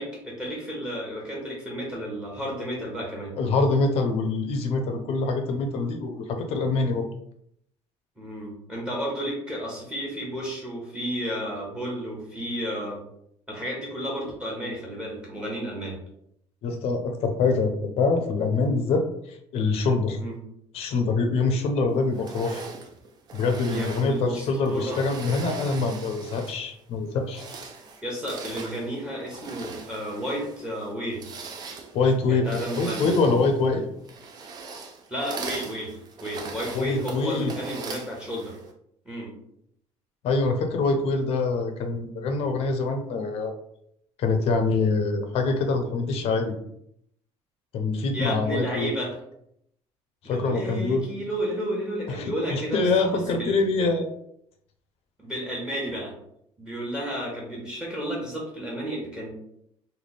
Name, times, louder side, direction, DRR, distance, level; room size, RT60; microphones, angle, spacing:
voice 1, 0.0-3.3 8.2-13.0 13.5-16.0 20.2-20.3 23.7-25.0 28.0-31.3 32.3-33.1 35.1-35.9 36.2-38.6 39.0-39.3 48.1-49.1 50.2-53.1 53.4-53.5 55.2-56.1 56.6-59.3, equal, 10° right, -3 dB, 1.0 m, -32 dB
voice 2, 3.4-7.1 16.6-20.2 20.7-22.6 23.3-27.4 31.9-32.5 32.7-33.9 36.7-37.5 40.2-43.5 44.2-46.5 47.7-48.9 50.2-51.1 52.1-54.1, left 3 dB, 60° left, 6 dB, 0.6 m, -25 dB
sound 1, 22.1-26.7 27.2-38.7, right 4 dB, 35° right, 0.5 m, -40 dB
3.3 x 2.2 x 4.0 m, 0.73 s
cardioid pair, 160°, 12 cm